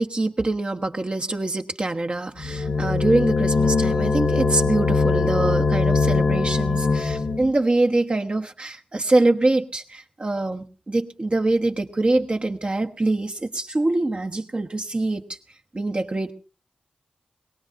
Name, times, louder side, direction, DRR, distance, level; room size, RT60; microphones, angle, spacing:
voice 1, 0.0-15.2 15.7-16.3, right 2 dB, 40° right, 4 dB, 1.2 m, -24 dB
sound 1, 2.4-7.5, left 4 dB, 65° left, 0.7 m, -21 dB
22.0 x 17.5 x 2.6 m, 0.36 s
cardioid pair, 55°, 3 cm